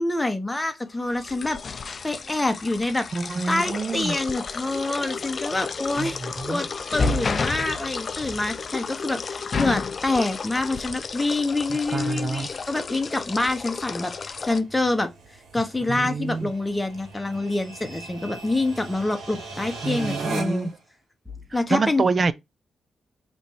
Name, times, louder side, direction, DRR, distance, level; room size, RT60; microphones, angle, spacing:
voice 1, 0.0-3.0 3.5-6.2 6.5-15.1 15.5-20.7 21.5-22.0, left 2 dB, 15° left, 1.1 m, -26 dB
sound 1, 1.0-14.6, left 4 dB, 45° left, 0.4 m, -31 dB
voice 2, 3.1-4.1 6.0-6.6 11.7-12.5 15.9-16.5 19.8-20.7 21.7-22.3, right 4 dB, 40° right, 0.5 m, -27 dB
sound 2, 10.5-20.8, right 3 dB, 70° right, 1.7 m, -41 dB
5.2 x 3.1 x 2.8 m
cardioid pair, 85°, 0 cm